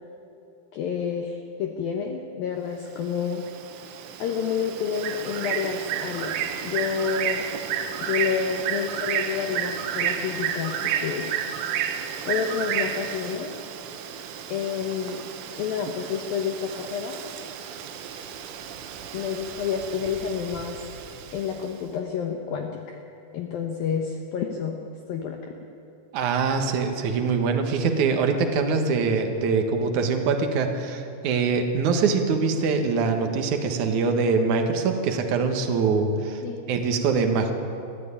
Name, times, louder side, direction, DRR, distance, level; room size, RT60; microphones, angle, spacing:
voice 1, 0.7-3.4 4.2-7.5 8.0-11.3 12.3-13.5 14.5-15.2 15.6-17.2 19.1-20.8 21.3-23.0 23.3-24.8 25.1-25.4 36.4-36.7, left 7 dB, 70° left, 3 dB, 2.2 m, -29 dB
Bird, 3.0-21.7, right 9 dB, 90° right, 3.7 m, -32 dB
voice 2, 26.1-36.4 36.7-37.5, right 5 dB, 65° right, 5 dB, 2.0 m, -23 dB
21.0 x 14.5 x 8.7 m, 2.7 s
omnidirectional pair, 5.5 m